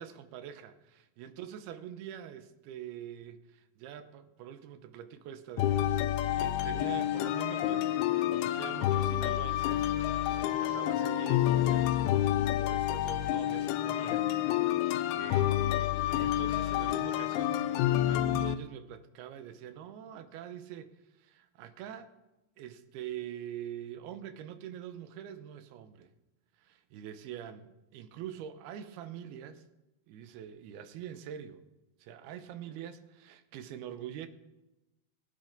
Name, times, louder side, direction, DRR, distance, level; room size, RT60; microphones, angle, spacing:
voice 1, 0.0-8.0 8.3-10.0 10.2-14.8 15.1-17.7 18.0-20.9 21.2-22.1 22.6-26.1 26.6-29.6 30.1-31.6 32.0-34.3, right 10 dB, 85° right, 2.8 m, -45 dB
sound 1, 5.6-18.6, left 12 dB, 85° left, 2.5 m, -29 dB
19.0 x 9.8 x 3.9 m
omnidirectional pair, 4.4 m